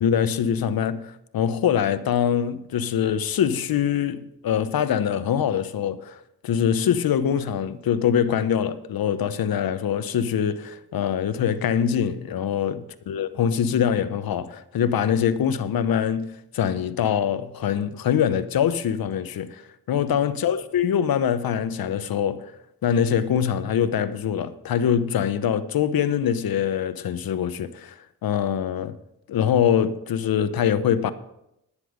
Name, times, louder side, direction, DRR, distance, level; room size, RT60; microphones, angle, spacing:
voice 1, 0.0-22.5 22.8-29.0 29.3-31.1, left 8 dB, 65° left, 0.9 m, -24 dB
10.5 x 9.9 x 5.0 m
cardioid pair, 75°, 38 cm